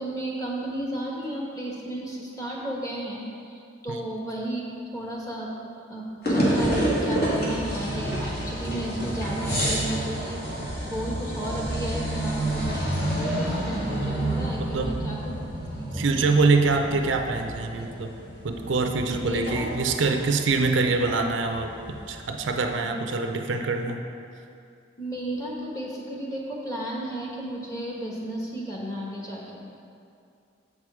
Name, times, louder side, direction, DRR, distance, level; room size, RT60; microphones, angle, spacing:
voice 1, 0.0-5.6 5.9-12.8 13.1-15.2 15.7-16.1 19.1-19.7 22.8-23.0 25.0-29.6, right 1 dB, 15° left, -3 dB, 1.2 m, -33 dB
sound 1, 6.2-22.6, right 1 dB, 50° left, 2.0 m, -29 dB
voice 2, 14.6-15.0 15.9-18.1 18.4-24.0, right 3 dB, 65° right, 4 dB, 0.5 m, -25 dB
7.6 x 6.1 x 4.8 m, 2.5 s
head